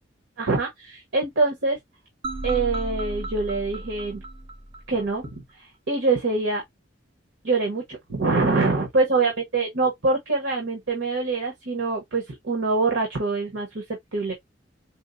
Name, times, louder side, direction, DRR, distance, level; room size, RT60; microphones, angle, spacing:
voice 1, 0.4-1.8 2.4-4.2 4.9-5.4 5.9-6.6 7.4-13.8 14.1-14.3, right 3 dB, 75° right, 1.1 m, -24 dB
sound 1, 2.2-5.3, right 1 dB, 30° right, 0.6 m, -34 dB
4.4 x 2.0 x 2.5 m
head